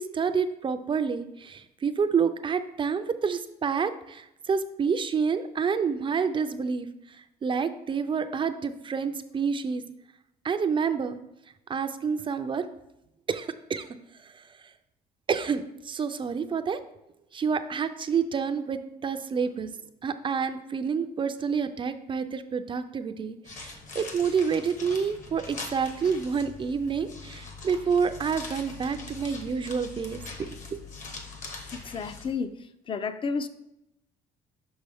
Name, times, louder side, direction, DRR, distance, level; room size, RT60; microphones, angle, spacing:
voice 1, 0.0-9.8 10.4-11.2 11.7-12.7 13.3-13.9 14.2-14.7 15.3-16.8 17.3-19.7 20.0-30.8, right 6 dB, 30° right, 0.4 m, -28 dB
sound 1, 23.4-32.3, left 3 dB, 45° left, 1.1 m, -42 dB
voice 2, 31.7-32.6 32.9-33.5, left 5 dB, 30° left, 0.4 m, -31 dB
5.9 x 5.4 x 3.5 m
cardioid pair, 110°, 17 cm